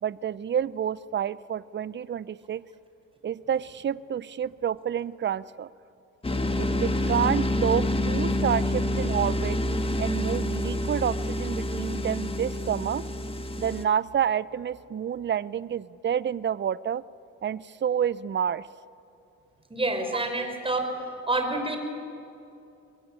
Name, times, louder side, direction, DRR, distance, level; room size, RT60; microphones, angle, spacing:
voice 1, 0.0-2.6 3.2-5.7 6.6-9.6 10.0-13.0 13.6-17.0 17.4-18.6, right 9 dB, 40° right, 19 dB, 0.6 m, -29 dB
sound 1, 6.2-13.8, left 1 dB, 20° left, 1.9 m, -27 dB
voice 2, 19.7-21.0 21.2-21.8, right 2 dB, 20° right, 5 dB, 4.9 m, -27 dB
23.5 x 22.0 x 8.9 m, 2.7 s
cardioid pair, 90°, 30 cm